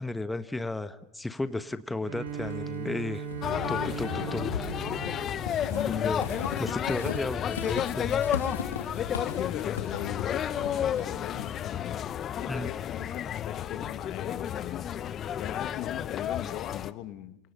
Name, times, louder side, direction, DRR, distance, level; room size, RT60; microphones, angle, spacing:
voice 1, 0.0-3.3 3.7-4.5 5.9-6.2 6.6-8.3 12.5-12.7, left 2 dB, 10° left, 1.3 m, -34 dB
Bowed string instrument, 2.0-6.3, right 6 dB, 70° right, 5.1 m, -38 dB
Walk footsteps / Squeak, 2.3-11.8, left 6 dB, 90° left, 2.3 m, -39 dB
sound 1, 3.4-16.9, left 9 dB, 40° left, 1.1 m, -32 dB
voice 2, 5.7-6.2 9.1-12.1 12.4-15.1 15.4-17.4, left 14 dB, 55° left, 1.7 m, -39 dB
29.5 x 26.5 x 5.5 m
hypercardioid pair, 90°, 0 cm